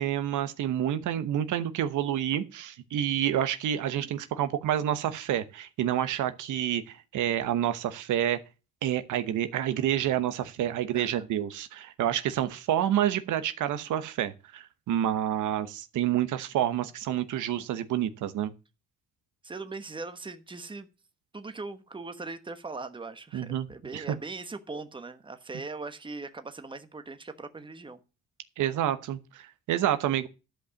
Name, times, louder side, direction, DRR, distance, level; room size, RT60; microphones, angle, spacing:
voice 1, 0.0-8.4 8.8-18.5 23.3-23.7 23.9-24.0 28.6-30.3, right 11 dB, 80° right, 1.0 m, -28 dB
voice 2, 10.9-11.3 19.4-20.9 21.3-28.0, right 3 dB, 15° right, 1.1 m, -40 dB
11.5 x 5.3 x 6.9 m
cardioid pair, 90°, 30 cm